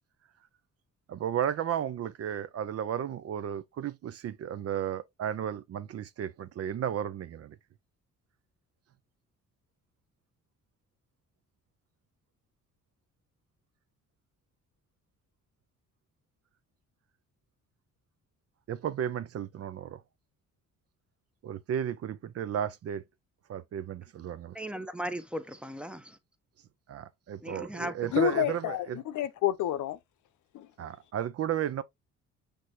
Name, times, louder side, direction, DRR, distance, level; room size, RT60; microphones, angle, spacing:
voice 1, 1.1-7.6 18.7-20.0 21.4-23.0 23.5-24.5 26.9-29.0 30.8-31.8, right 9 dB, 50° right, 0.5 m, -33 dB
voice 2, 24.5-26.2 27.4-28.1, equal, 5° right, 0.7 m, -37 dB
voice 3, 28.1-30.0 30.5-30.7, left 11 dB, 75° left, 0.7 m, -29 dB
5.9 x 3.4 x 2.6 m
cardioid pair, 90°, 30 cm